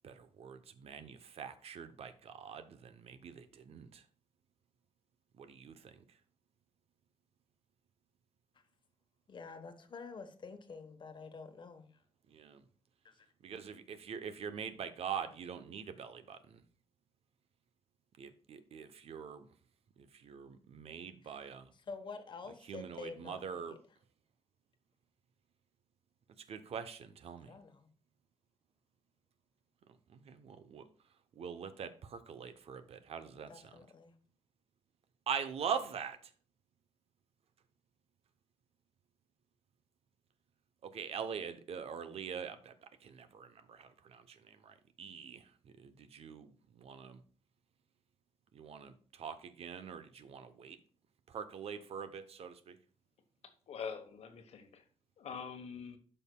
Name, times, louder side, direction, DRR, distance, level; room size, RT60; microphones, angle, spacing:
voice 1, 0.0-4.0 5.4-5.9 12.3-12.6 13.4-16.6 18.2-19.5 20.1-21.7 22.7-23.8 26.5-27.5 30.1-30.8 31.4-33.5 35.3-36.2 40.8-42.7 43.0-45.4 45.8-46.5 46.8-47.2 48.5-50.8 51.3-52.8, right 7 dB, 70° right, 0.7 m, -43 dB
voice 2, 9.3-12.0 13.0-13.3 21.2-23.8 27.4-27.9 33.3-34.1, left 4 dB, 50° left, 1.0 m, -49 dB
voice 3, 53.4-54.8 55.2-56.0, left 6 dB, 85° left, 1.1 m, -45 dB
12.5 x 5.5 x 2.2 m
wide cardioid pair, 120°, 11 cm